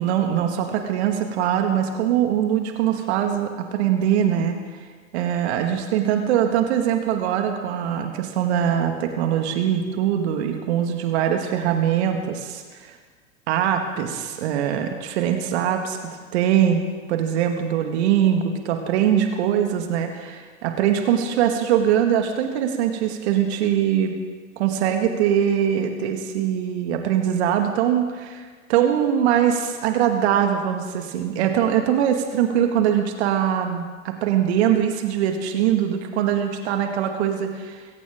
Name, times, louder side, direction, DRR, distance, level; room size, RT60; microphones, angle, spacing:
voice 1, 0.0-4.6 5.1-12.9 13.5-16.8 17.1-24.2 24.6-28.4 28.7-37.8, right 9 dB, 50° right, 4 dB, 2.2 m, -22 dB
23.0 x 16.5 x 3.8 m, 1.5 s
figure-of-eight pair, 105°, 42 cm